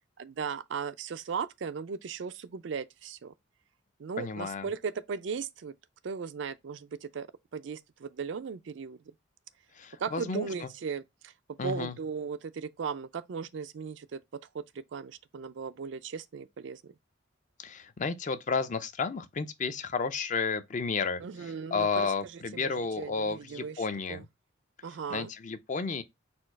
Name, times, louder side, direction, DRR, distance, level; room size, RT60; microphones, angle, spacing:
voice 1, 0.2-3.3 4.0-5.7 6.0-7.3 7.5-9.0 10.0-11.3 11.6-14.5 14.9-16.9 21.2-24.3 24.8-25.3, right 6 dB, 65° right, 0.4 m, -37 dB
voice 2, 4.2-4.7 9.8-10.7 11.6-11.9 17.6-24.2 25.1-26.0, left 5 dB, 40° left, 0.4 m, -32 dB
4.3 x 2.3 x 4.5 m
head